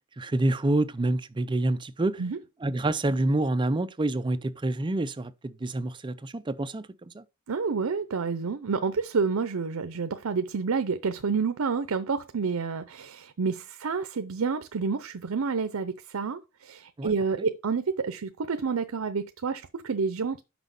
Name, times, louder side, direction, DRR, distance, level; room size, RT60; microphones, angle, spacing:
voice 1, 0.2-2.2 2.6-6.9 7.1-7.2 17.0-17.1, right 2 dB, 20° right, 0.5 m, -27 dB
voice 2, 7.5-20.4, right 5 dB, 75° right, 0.6 m, -29 dB
6.1 x 5.0 x 5.2 m
head